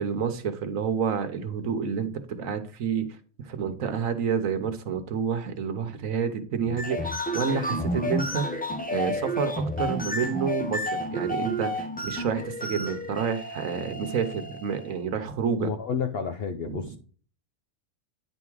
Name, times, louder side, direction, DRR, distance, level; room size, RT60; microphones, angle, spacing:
voice 1, 0.0-3.0 3.4-8.5 8.9-15.7 16.6-17.0, right 6 dB, 80° right, 8 dB, 1.3 m, -29 dB
sound 1, 6.7-14.9, equal, 15° left, 0.3 m, -31 dB
voice 2, 15.6-17.0, left 6 dB, 60° left, 6 dB, 0.7 m, -30 dB
9.8 x 3.6 x 4.7 m, 0.41 s
omnidirectional pair, 1.4 m